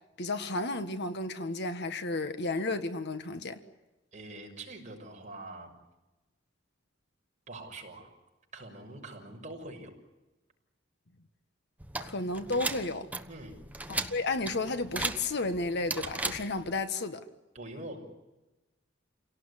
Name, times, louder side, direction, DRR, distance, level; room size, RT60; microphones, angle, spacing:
voice 1, 0.2-3.6 12.0-13.1 13.9-17.2, left 2 dB, 60° left, 1.5 m, -32 dB
voice 2, 4.1-5.7 7.5-8.1 8.5-9.9 13.3-13.6 17.5-18.0, right 2 dB, 40° right, 6.3 m, -44 dB
sound 1, 11.8-16.8, right 2 dB, 10° right, 1.2 m, -37 dB
29.5 x 18.0 x 10.0 m
head